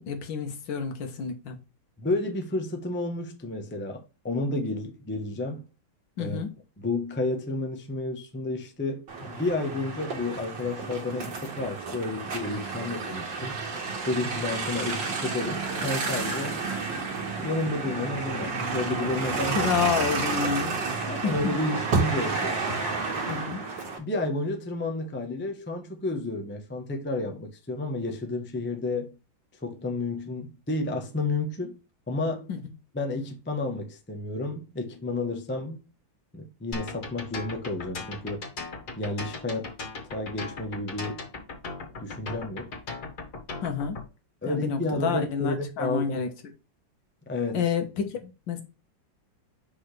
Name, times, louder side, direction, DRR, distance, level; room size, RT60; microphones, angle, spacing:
voice 1, 0.0-1.6 6.2-6.5 19.5-20.8 21.2-21.5 23.3-23.6 32.5-32.6 43.6-44.0 44.5-46.3 47.5-48.6, left 6 dB, 70° left, 1.8 m, -29 dB
voice 2, 2.0-5.6 6.2-6.4 6.8-13.5 14.0-16.6 17.4-19.6 21.1-22.6 24.0-29.1 29.6-31.7 32.1-32.5 32.9-35.8 36.3-38.5 39.0-39.7 40.1-41.3 42.0-42.7 44.4-46.2 47.3-47.7, left 2 dB, 10° left, 0.5 m, -31 dB
sound 1, 9.1-24.0, right 4 dB, 65° right, 2.3 m, -31 dB
sound 2, 36.7-44.0, left 3 dB, 55° left, 2.2 m, -37 dB
6.1 x 5.5 x 3.2 m
omnidirectional pair, 2.1 m